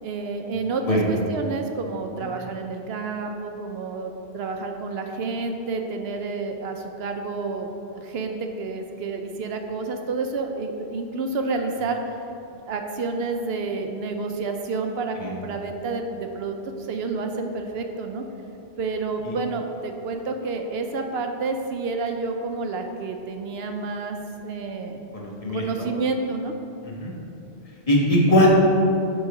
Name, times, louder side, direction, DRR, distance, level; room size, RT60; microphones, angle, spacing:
voice 1, 0.0-12.1 12.7-18.2 18.8-25.0 25.3-26.5, right 3 dB, 70° right, 4 dB, 0.8 m, -29 dB
voice 2, 25.1-25.9 26.8-27.1 27.9-28.5, left 1 dB, 35° left, -4 dB, 1.3 m, -21 dB
8.6 x 3.9 x 4.8 m, 2.8 s
omnidirectional pair, 1.1 m